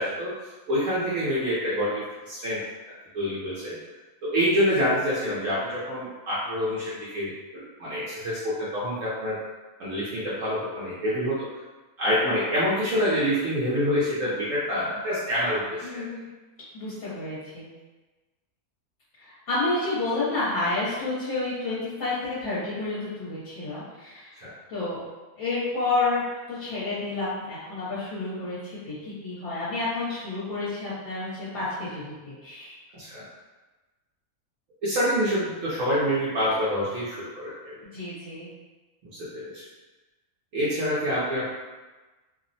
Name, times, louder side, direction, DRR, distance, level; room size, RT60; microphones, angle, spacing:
voice 1, 0.0-2.6 3.1-3.8 4.2-9.4 9.8-11.5 12.0-16.1 24.4-24.5 32.9-33.2 34.8-37.8 39.1-39.6 40.5-41.5, equal, 65° right, -9 dB, 0.9 m, -27 dB
voice 2, 15.8-16.2 16.7-17.7 19.2-24.3 24.7-25.0 25.4-26.2 26.5-32.7 37.8-38.5, left 2 dB, 60° left, -11 dB, 1.1 m, -30 dB
2.7 x 2.0 x 2.6 m, 1.2 s
omnidirectional pair, 1.6 m